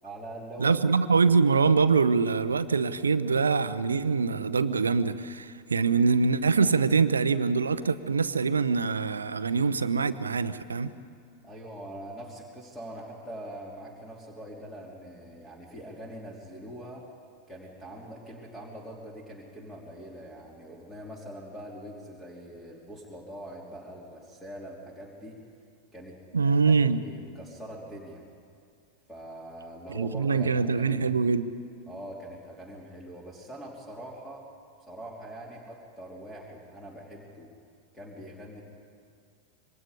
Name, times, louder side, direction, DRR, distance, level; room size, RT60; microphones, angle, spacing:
voice 1, 0.0-0.8 11.4-17.1 17.5-25.4 25.9-26.2 26.4-28.2 29.1-31.1 31.9-34.5 34.9-37.5 37.9-38.6, right 1 dB, 5° left, 3.3 m, -43 dB
voice 2, 0.6-10.9 26.3-27.0 29.9-31.5, right 4 dB, 75° right, 0.8 m, -24 dB
26.0 x 24.0 x 5.1 m
figure-of-eight pair, 90°, 0 cm